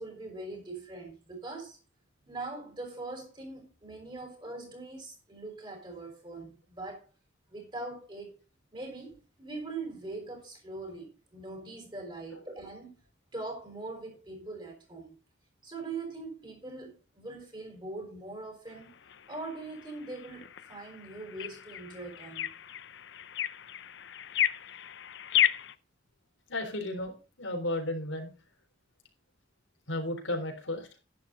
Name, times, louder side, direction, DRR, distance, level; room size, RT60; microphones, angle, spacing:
voice 1, 0.0-1.8 2.3-7.0 7.5-8.4 8.7-12.9 13.3-15.1 15.6-19.0 19.3-22.5, right 3 dB, 25° right, 4.9 m, -42 dB
sound 1, 18.7-25.7, left 10 dB, 65° left, 0.6 m, -33 dB
voice 2, 26.5-28.3 29.9-30.9, left 1 dB, 85° left, 3.7 m, -33 dB
11.0 x 9.9 x 3.9 m
head